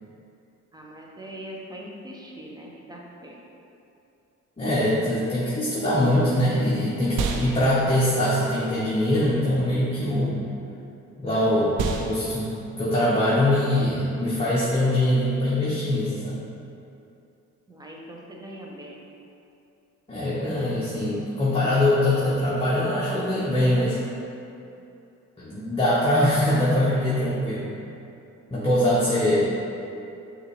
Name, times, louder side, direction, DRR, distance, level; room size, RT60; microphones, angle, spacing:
voice 1, 0.7-3.4 17.7-19.0 29.2-29.5, right 1 dB, 15° right, -2 dB, 0.7 m, -41 dB
voice 2, 4.6-10.3 11.2-12.5 12.8-16.4 20.1-24.0 25.4-27.7 28.5-29.5, left 1 dB, 20° left, -9 dB, 0.9 m, -23 dB
sound 1, 7.1-15.4, right 4 dB, 85° right, 0.5 m, -36 dB
6.1 x 2.6 x 3.2 m, 2.8 s
cardioid pair, 90°, 30 cm